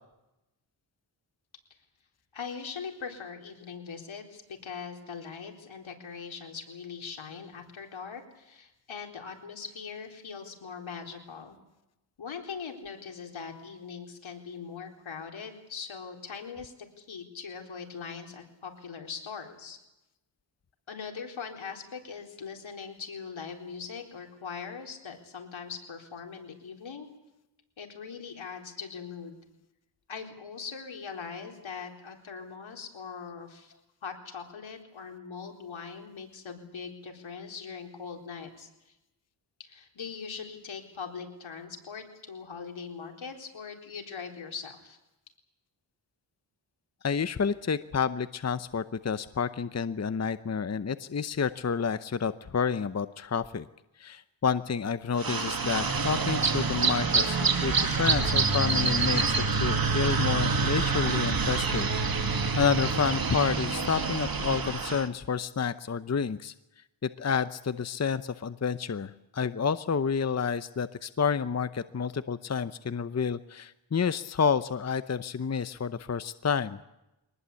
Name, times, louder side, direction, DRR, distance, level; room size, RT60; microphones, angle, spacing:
voice 1, 2.3-11.6 12.2-19.8 20.9-27.1 27.8-29.4 30.1-33.7 34.0-38.9 39.6-45.0, left 6 dB, 80° left, 2 dB, 4.1 m, -41 dB
voice 2, 47.0-53.7 54.0-59.3 59.6-61.9 62.2-66.5 67.0-76.8, left 6 dB, 35° left, 13 dB, 0.8 m, -29 dB
sound 1, 55.2-65.1, right 4 dB, 50° right, 2.2 m, -27 dB
23.5 x 19.5 x 8.4 m, 0.92 s
wide cardioid pair, 75°, 46 cm